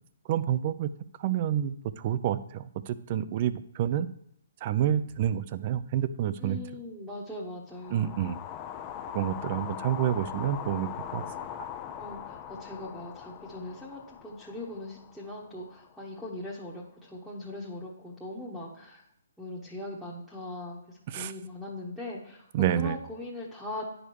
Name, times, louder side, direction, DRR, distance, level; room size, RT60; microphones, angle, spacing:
voice 1, 0.3-0.9 1.2-4.1 4.6-6.6 7.9-8.4 9.1-11.2 21.1-21.3 22.5-23.0, right 10 dB, 40° right, 14 dB, 0.5 m, -28 dB
voice 2, 6.4-8.2 12.0-19.0 19.4-22.5 22.8-23.9, left 1 dB, ahead, -6 dB, 1.2 m, -40 dB
sound 1, 7.7-16.0, left 9 dB, 25° left, 0.6 m, -41 dB
9.7 x 5.1 x 4.7 m, 0.76 s
hypercardioid pair, 145°, 0 cm